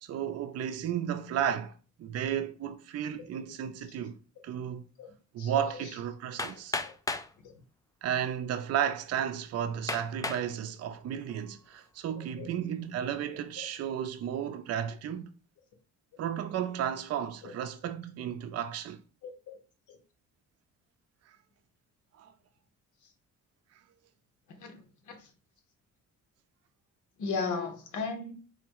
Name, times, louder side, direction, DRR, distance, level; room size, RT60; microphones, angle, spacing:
voice 1, 0.0-4.9 5.3-6.8 8.0-15.3 16.2-19.0 22.2-22.3, right 9 dB, 55° right, 0.5 m, -33 dB
voice 2, 5.4-5.8 7.4-7.5 12.4-12.5 13.6-13.7 17.4-17.5 19.2-19.3 19.9-20.0 24.6-24.8 25.1-25.3 27.2-28.3, left 4 dB, 80° left, 1.0 m, -35 dB
Hammer, 6.4-7.3 8.2-8.3 8.9-9.0 9.9-10.5 11.1-11.5, left 3 dB, 10° left, 0.3 m, -34 dB
3.9 x 2.2 x 4.5 m
cardioid pair, 90°, 30 cm